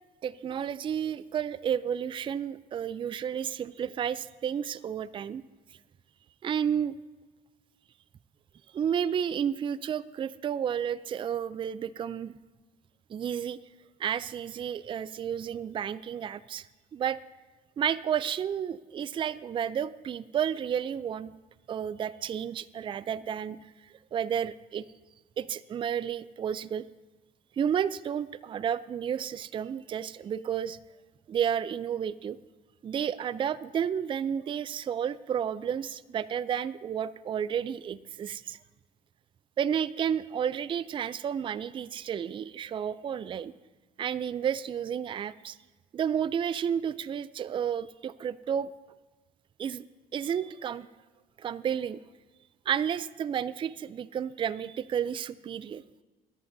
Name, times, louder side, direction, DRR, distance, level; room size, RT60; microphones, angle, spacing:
voice 1, 0.2-5.4 6.4-6.9 8.7-12.3 13.1-13.6 14.0-16.7 16.9-17.2 17.8-21.3 21.7-24.9 25.4-26.9 27.6-30.8 31.3-32.4 32.8-38.6 39.6-43.5 44.0-45.6 45.9-48.7 49.6-49.9 50.1-50.9 51.4-52.0 52.7-55.8, right 8 dB, 30° right, 16 dB, 0.4 m, -31 dB
22.0 x 10.5 x 2.7 m, 1.3 s
cardioid pair, 110°, 17 cm